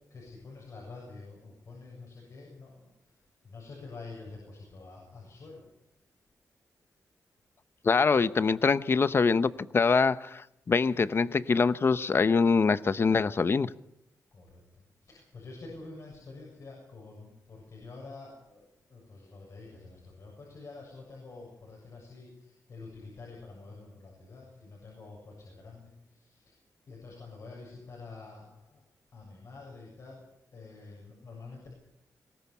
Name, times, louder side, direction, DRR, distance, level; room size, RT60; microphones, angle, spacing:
voice 1, 0.1-2.9 3.4-5.6 14.3-26.6 26.9-28.8 29.1-31.7, left 3 dB, 60° left, 7.2 m, -48 dB
voice 2, 7.8-13.7, left 5 dB, 40° left, 0.7 m, -24 dB
22.5 x 18.5 x 7.1 m
wide cardioid pair, 105°, 6 cm